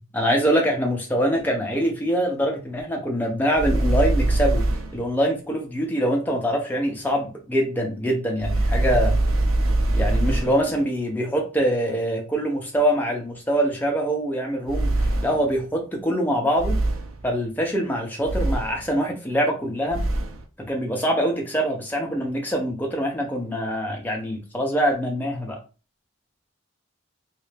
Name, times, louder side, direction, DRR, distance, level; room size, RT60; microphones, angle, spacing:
voice 1, 0.1-9.1 9.9-16.7 17.2-20.0 20.7-25.6, equal, 10° left, 0 dB, 0.7 m, -24 dB
sound 1, 3.5-5.0 8.4-10.7 14.7-15.5 16.6-17.2 18.2-18.9 19.9-20.4, right 2 dB, 75° right, 0.6 m, -23 dB
3.2 x 2.7 x 3.3 m, 0.33 s
head